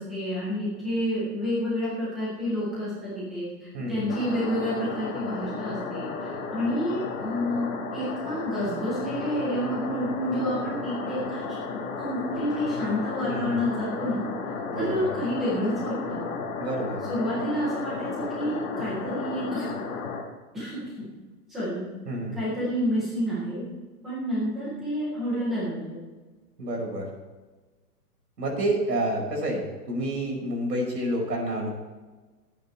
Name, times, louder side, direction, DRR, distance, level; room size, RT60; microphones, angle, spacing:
voice 1, 0.0-11.6 12.0-14.2 14.7-16.2 17.0-19.6 20.5-21.0 21.5-21.8 22.3-23.7 24.0-26.0, equal, ahead, -10 dB, 0.4 m, -29 dB
sound 1, 4.1-20.2, left 4 dB, 20° left, 1.8 m, -33 dB
voice 2, 13.3-13.6 14.7-15.2 16.6-17.0 22.1-22.4 26.6-27.1 28.4-31.7, right 1 dB, 90° right, -1 dB, 5.4 m, -29 dB
19.5 x 8.7 x 4.3 m, 1.3 s
hypercardioid pair, 155°, 48 cm